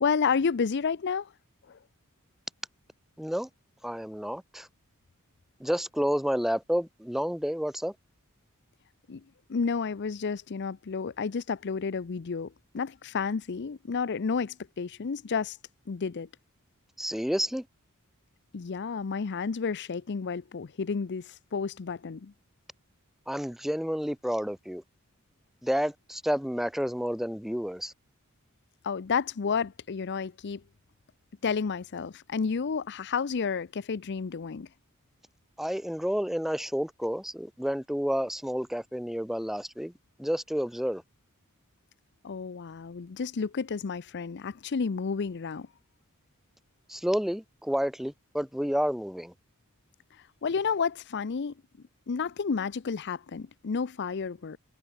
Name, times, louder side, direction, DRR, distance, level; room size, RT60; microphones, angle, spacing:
voice 1, 0.0-1.3 1.7-1.8 9.1-9.2 9.5-15.6 15.9-16.3 18.5-22.3 28.8-30.6 31.4-34.7 42.2-45.7 50.4-51.5 52.1-54.6, left 5 dB, 50° left, 0.5 m, -31 dB
voice 2, 3.2-3.5 3.8-4.7 5.6-7.9 17.0-17.6 23.3-24.8 25.6-27.9 35.6-39.9 40.2-41.0 46.9-49.3, equal, ahead, 0.6 m, -30 dB
head